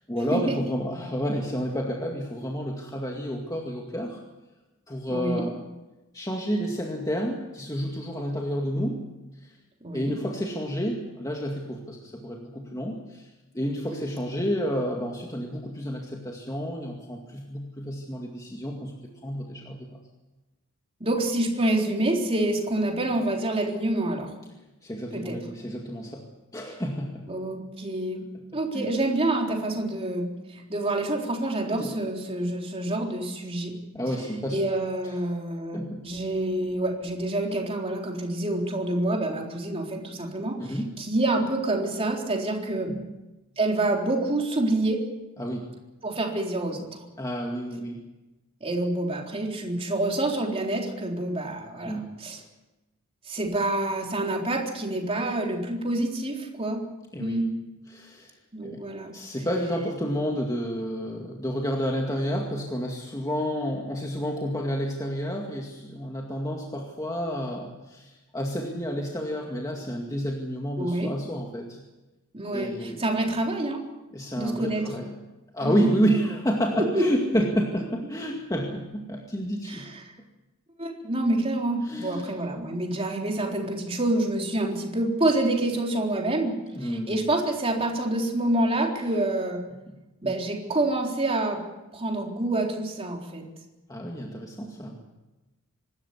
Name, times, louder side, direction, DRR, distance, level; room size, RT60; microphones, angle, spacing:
voice 1, 0.1-4.2 4.9-5.6 6.1-9.0 9.4-9.5 9.9-13.3 13.5-18.9 19.2-19.9 24.8-26.3 26.5-27.2 28.7-28.9 31.8-31.9 33.9-34.7 35.7-36.1 40.6-40.9 42.9-43.1 45.4-45.7 47.2-48.0 51.8-52.1 57.1-57.3 57.9-58.3 58.6-58.8 59.1-71.8 72.5-73.0 74.1-75.1 75.5-79.9 81.8-82.3 86.7-87.2 89.9-90.0 90.2-90.3 93.9-95.0, equal, 15° left, 0 dB, 2.2 m, -30 dB
voice 2, 5.1-5.4 9.8-10.1 21.0-24.3 25.1-25.4 27.3-28.2 28.5-33.7 34.5-42.9 43.6-45.0 46.0-47.0 48.6-52.4 53.3-56.8 57.2-57.5 58.5-59.1 70.8-71.1 72.3-73.8 74.4-74.8 75.6-75.9 76.7-77.1 79.7-80.1 80.8-89.6 90.2-91.6 91.9-93.4, right 2 dB, 25° right, 0 dB, 3.9 m, -27 dB
25.5 x 13.0 x 9.6 m, 1.1 s
head